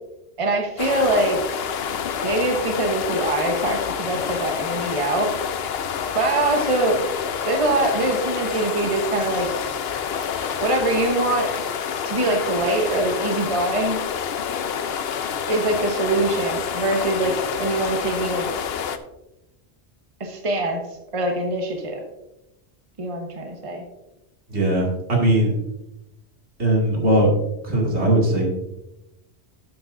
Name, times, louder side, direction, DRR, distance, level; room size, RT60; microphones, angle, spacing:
voice 1, 0.4-1.4 2.2-5.3 6.1-7.0 7.5-9.5 10.6-11.5 12.0-14.0 15.5-17.3 17.6-18.5 20.2-20.8 21.1-22.0 23.0-23.8, right 2 dB, 30° right, 2 dB, 1.1 m, -23 dB
sound 1, 0.8-19.0, left 7 dB, 70° left, 0.9 m, -28 dB
voice 2, 24.5-25.5 26.6-27.3 27.6-28.4, right 1 dB, 85° right, -2 dB, 2.6 m, -19 dB
12.0 x 7.7 x 2.6 m, 0.91 s
omnidirectional pair, 1.1 m